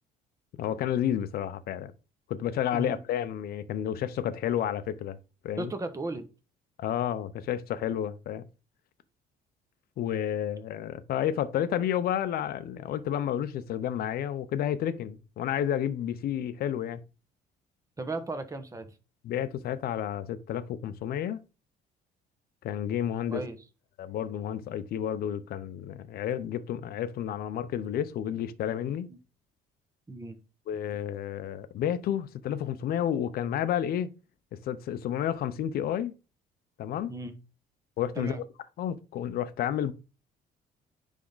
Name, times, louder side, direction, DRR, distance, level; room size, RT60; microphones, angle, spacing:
voice 1, 0.6-1.9 2.3-5.2 5.4-5.7 6.8-8.4 10.0-17.0 19.2-21.4 22.6-23.4 24.0-29.1 30.7-34.1 34.7-36.1 36.8-37.1 38.0-38.4 38.8-39.9, left 10 dB, 65° left, 0.7 m, -31 dB
voice 2, 5.6-6.3 18.0-18.9 23.3-23.6 29.1-29.2 30.1-30.4 37.1-37.3 38.2-38.4, right 2 dB, 20° right, 1.2 m, -35 dB
9.7 x 3.6 x 4.0 m
cardioid pair, 110°, 17 cm